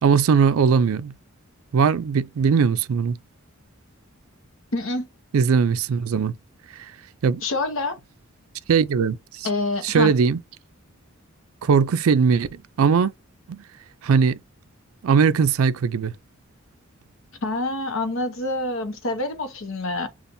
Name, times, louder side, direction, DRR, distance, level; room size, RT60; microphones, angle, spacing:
voice 1, 0.0-1.1 1.7-3.2 5.3-6.3 6.8-6.9 7.2-7.4 8.7-9.5 9.8-10.4 11.6-13.1 13.5-13.6 14.0-14.4 15.0-16.1, right 6 dB, 75° right, 0.4 m, -20 dB
voice 2, 4.7-5.1 7.4-8.0 9.4-10.1 17.4-20.1, left 2 dB, 65° left, 0.9 m, -26 dB
6.9 x 2.4 x 2.6 m
head